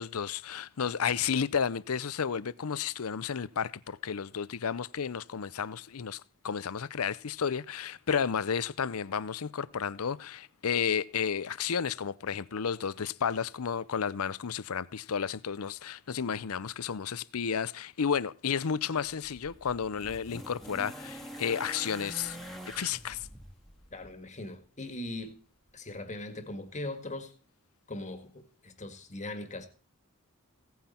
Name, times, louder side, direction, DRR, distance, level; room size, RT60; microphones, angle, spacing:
voice 1, 0.0-22.4 22.7-23.3, left 7 dB, 75° left, 0.6 m, -32 dB
sound 1, 19.0-24.2 25.3-25.4, equal, ahead, 1.9 m, -45 dB
voice 2, 23.9-25.4 25.7-27.3 27.9-29.7, left 2 dB, 35° left, 1.9 m, -40 dB
17.0 x 9.3 x 4.4 m
head